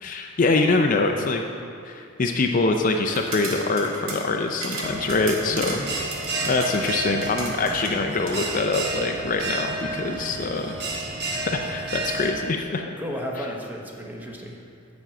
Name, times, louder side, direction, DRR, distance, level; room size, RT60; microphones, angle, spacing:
voice 1, 0.0-1.4 1.9-5.8 6.5-10.8 11.5-13.0, left 3 dB, 40° left, 3 dB, 0.5 m, -24 dB
sound 1, 3.1-8.4, right 2 dB, 80° right, 1.7 m, -35 dB
Bell, 4.8-12.3, right 2 dB, 50° right, 1.2 m, -31 dB
voice 2, 5.5-5.8 13.0-14.6, equal, 10° right, -1 dB, 1.0 m, -33 dB
7.4 x 6.1 x 7.8 m, 2.5 s
head